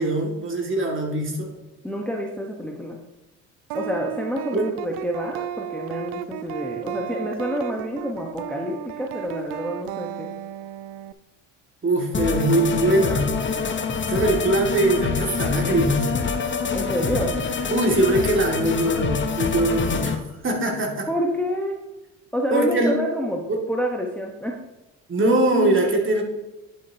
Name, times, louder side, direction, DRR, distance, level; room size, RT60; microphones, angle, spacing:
voice 1, 0.0-1.5 4.5-4.7 11.8-13.3 14.1-16.1 17.7-21.1 22.5-23.0 23.5-23.6 25.1-26.2, right 1 dB, 30° right, 0 dB, 2.3 m, -22 dB
voice 2, 1.8-3.0 3.7-10.3 16.7-17.4 21.1-21.8 22.3-24.6, equal, 5° left, 0 dB, 1.2 m, -28 dB
sound 1, 3.7-11.1, right 12 dB, 70° right, 0.6 m, -34 dB
sound 2, 12.1-20.2, left 5 dB, 30° left, 1.1 m, -26 dB
10.5 x 6.2 x 2.9 m, 1.1 s
hypercardioid pair, 65°, 38 cm